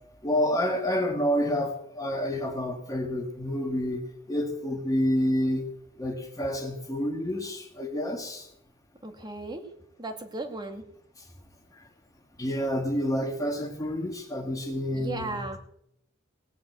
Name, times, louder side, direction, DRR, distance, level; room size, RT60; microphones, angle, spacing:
voice 1, 0.2-5.6 6.0-8.5 11.7-11.8 12.4-15.4, equal, 15° left, 2 dB, 1.7 m, -28 dB
voice 2, 9.0-9.6 10.0-10.8 14.9-15.6, right 2 dB, 20° right, 6 dB, 1.8 m, -35 dB
19.0 x 7.1 x 8.1 m, 0.75 s
head